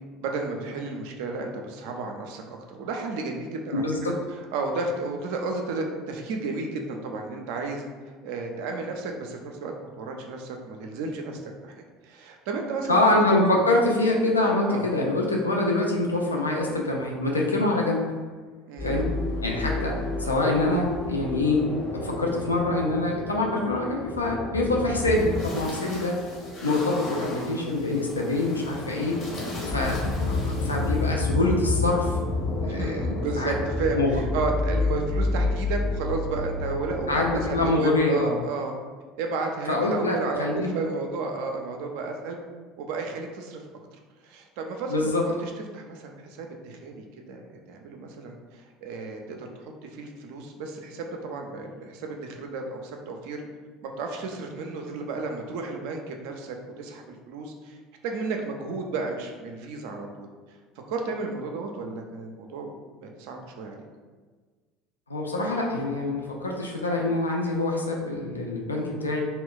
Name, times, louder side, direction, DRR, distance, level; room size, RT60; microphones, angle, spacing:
voice 1, 0.2-11.8 12.0-13.0 14.7-14.8 18.7-19.1 24.4-24.5 28.9-29.1 29.3-29.6 32.6-38.7 39.2-42.4 42.8-43.6 44.2-53.4 53.8-57.8 58.0-60.3 60.9-62.7 63.0-63.8, right 3 dB, 60° right, 3 dB, 0.4 m, -33 dB
voice 2, 12.9-18.0 18.8-19.1 19.4-21.7 21.9-26.2 26.6-29.2 29.7-32.2 32.7-33.0 33.4-33.5 33.9-34.2 37.1-38.3 39.7-40.8 44.9-45.2 65.1-69.2, left 2 dB, 80° left, -1 dB, 0.3 m, -25 dB
sound 1, 18.8-37.7, left 2 dB, 40° left, 0.8 m, -30 dB
2.2 x 2.1 x 3.6 m, 1.4 s
figure-of-eight pair, 65°, 0 cm